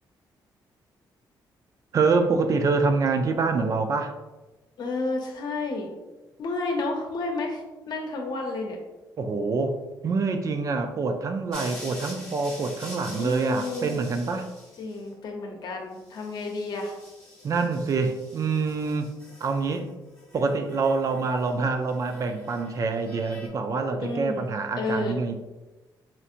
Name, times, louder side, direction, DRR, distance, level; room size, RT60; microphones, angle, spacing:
voice 1, 1.9-4.1 9.2-9.8 10.0-14.5 17.4-19.1 19.4-19.9 20.3-25.4, right 4 dB, 45° right, 7 dB, 0.3 m, -26 dB
voice 2, 4.8-5.9 6.4-7.6 7.9-8.8 13.2-14.0 14.8-17.0 24.0-24.4 24.8-25.2, left 2 dB, 60° left, 2 dB, 0.7 m, -30 dB
sound 1, 11.5-15.0 16.0-19.8 20.1-21.5 21.9-23.5, left 1 dB, 10° left, 1.3 m, -46 dB
4.3 x 2.7 x 2.5 m, 1.1 s
cardioid pair, 135°, 8 cm